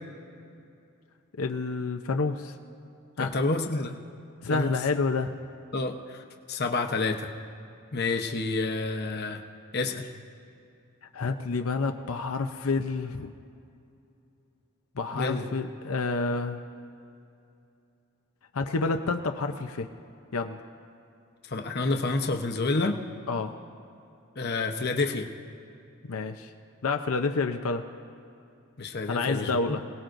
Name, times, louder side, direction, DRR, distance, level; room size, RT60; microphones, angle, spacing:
voice 1, 1.4-2.6 3.2-3.3 4.4-5.4 11.1-13.3 15.0-16.6 18.5-19.9 20.3-20.6 23.3-23.5 26.1-26.5 26.8-27.8 29.1-29.8, left 3 dB, 80° left, 5 dB, 0.7 m, -29 dB
voice 2, 3.2-4.0 4.5-4.7 5.7-6.2 6.5-7.3 7.9-9.4 9.7-10.1 15.1-15.4 21.5-23.0 24.4-25.3 28.8-29.8, left 3 dB, 50° left, 4 dB, 0.9 m, -28 dB
26.5 x 18.0 x 2.6 m, 2.6 s
head